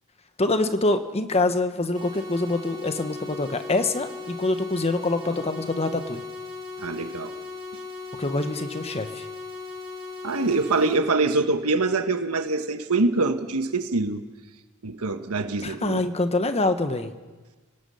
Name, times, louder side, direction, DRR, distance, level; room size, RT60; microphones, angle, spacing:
voice 1, 0.4-6.2 8.2-9.3 15.6-17.1, left 2 dB, 30° left, 9 dB, 1.2 m, -25 dB
sound 1, 1.9-10.9, left 4 dB, 20° right, 5.4 m, -37 dB
voice 2, 6.8-7.3 10.2-14.2 14.8-16.0, right 3 dB, 85° right, 8 dB, 1.2 m, -24 dB
29.0 x 18.5 x 5.6 m, 1.3 s
head